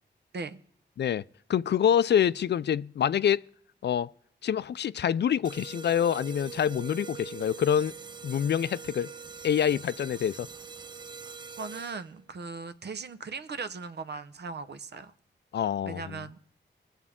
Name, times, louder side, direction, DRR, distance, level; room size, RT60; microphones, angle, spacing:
voice 1, 1.5-3.4 3.8-4.1 4.4-7.9 8.2-9.1 9.4-10.5 15.5-16.2, left 9 dB, 65° left, 0.4 m, -26 dB
sound 1, 5.4-12.2, right 6 dB, 25° right, 0.4 m, -43 dB
voice 2, 11.6-15.1 15.8-16.4, right 4 dB, 60° right, 0.8 m, -38 dB
20.0 x 7.2 x 3.6 m
cardioid pair, 55°, 19 cm